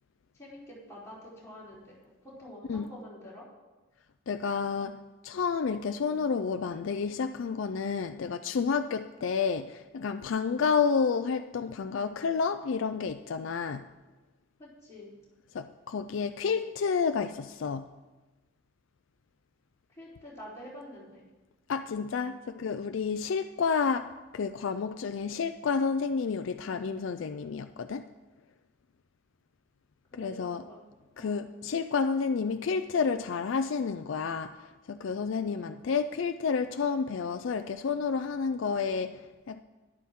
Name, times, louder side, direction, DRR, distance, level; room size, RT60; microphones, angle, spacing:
voice 1, 0.3-3.4 14.6-15.1 20.0-21.2 30.1-30.8 31.2-31.5, equal, 15° left, -8 dB, 3.8 m, -47 dB
voice 2, 4.3-13.9 15.5-17.9 21.7-28.1 30.2-30.6 31.2-39.6, left 5 dB, 60° left, 9 dB, 0.4 m, -30 dB
12.5 x 11.0 x 3.7 m, 1.2 s
head